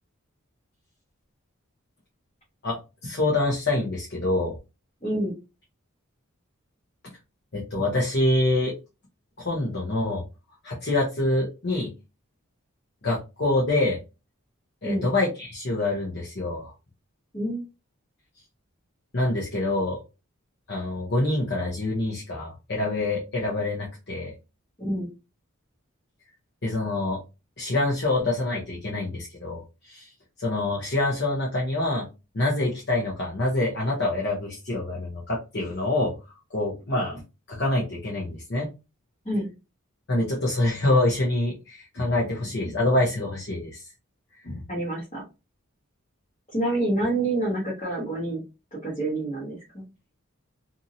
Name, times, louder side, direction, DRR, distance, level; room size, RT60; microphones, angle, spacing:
voice 1, 2.6-4.6 7.5-8.7 9.4-10.2 10.6-11.9 13.0-14.0 14.8-16.7 19.1-20.0 20.7-24.3 26.6-27.2 27.6-30.1 30.4-32.1 32.3-36.1 36.5-37.2 37.5-38.7 40.1-43.9 44.4-44.6, left 2 dB, 50° left, -3 dB, 0.7 m, -26 dB
voice 2, 5.0-5.3 14.8-15.1 17.3-17.6 24.8-25.1 39.2-39.5 44.7-45.2 46.5-48.4 48.8-49.8, right 1 dB, 30° left, -8 dB, 1.2 m, -27 dB
2.7 x 2.6 x 2.7 m, 0.28 s
head